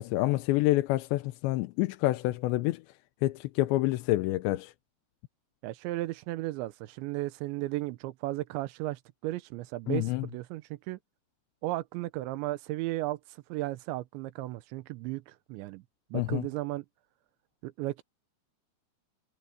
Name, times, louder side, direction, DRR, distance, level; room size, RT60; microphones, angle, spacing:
voice 1, 0.0-2.8 3.2-4.7 9.9-10.3 16.1-16.4, left 18 dB, 85° left, 3.0 m, -27 dB
voice 2, 5.6-11.0 11.6-15.8 16.1-16.9 17.6-18.0, right 18 dB, 90° right, 3.1 m, -35 dB
omnidirectional pair, 5.2 m